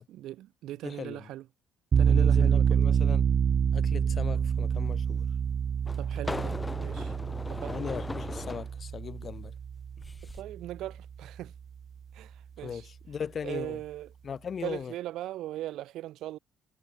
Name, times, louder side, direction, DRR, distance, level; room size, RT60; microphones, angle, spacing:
voice 1, 0.0-1.5 2.0-2.8 6.0-7.1 7.5-7.8 10.3-11.5 12.1-12.8 13.4-14.1 14.6-16.4, right 14 dB, 65° right, 6.3 m, -39 dB
voice 2, 0.8-1.3 2.1-3.2 3.7-5.3 7.7-9.5 12.6-13.8 14.2-14.9, left 7 dB, 45° left, 6.9 m, -38 dB
sound 1, 1.9-10.8, right 7 dB, 50° right, 2.9 m, -27 dB
sound 2, 4.7-4.8 5.8-8.7 10.0-10.4, left 2 dB, 20° left, 1.9 m, -38 dB
figure-of-eight pair, 45°, 0 cm